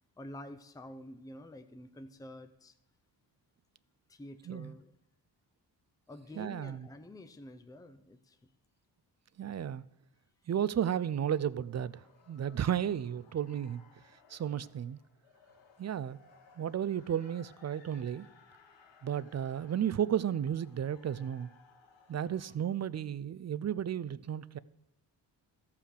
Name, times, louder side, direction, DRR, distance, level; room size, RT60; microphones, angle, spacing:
voice 1, 0.2-2.7 4.1-4.9 6.1-8.4, left 1 dB, 10° left, 0.6 m, -48 dB
voice 2, 6.4-6.9 9.4-9.8 10.5-13.8 14.3-15.0 15.8-16.2 16.6-18.3 19.0-21.5 22.1-24.6, right 9 dB, 40° right, 0.4 m, -33 dB
sound 1, 11.6-22.6, left 5 dB, 80° left, 1.4 m, -62 dB
13.5 x 5.8 x 6.4 m
cardioid pair, 80°, 44 cm